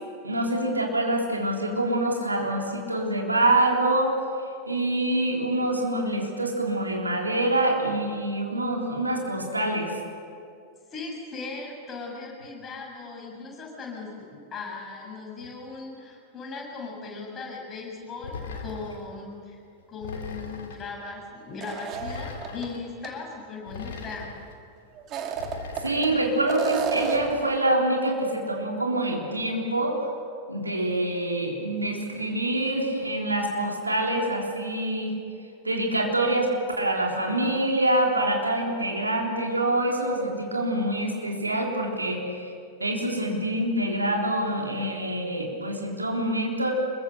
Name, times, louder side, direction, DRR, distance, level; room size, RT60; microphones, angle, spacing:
voice 1, 0.2-4.2 4.7-9.9 25.8-30.1 30.5-35.1 35.6-36.5 36.8-42.5 42.8-46.7, right 1 dB, 80° right, 0 dB, 3.7 m, -26 dB
voice 2, 10.9-19.6 19.9-24.3, left 4 dB, 25° left, -1 dB, 7.5 m, -38 dB
sound 1, 18.2-19.1 20.0-20.9 21.9-22.8 23.7-24.5 25.4-26.3, left 4 dB, 60° left, 2.7 m, -39 dB
sound 2, 21.6-22.7 23.0-23.1 25.0-26.1 26.5-27.4, right 6 dB, 35° right, 2.4 m, -31 dB
26.0 x 22.5 x 6.7 m, 2.4 s
figure-of-eight pair, 90°, 0 cm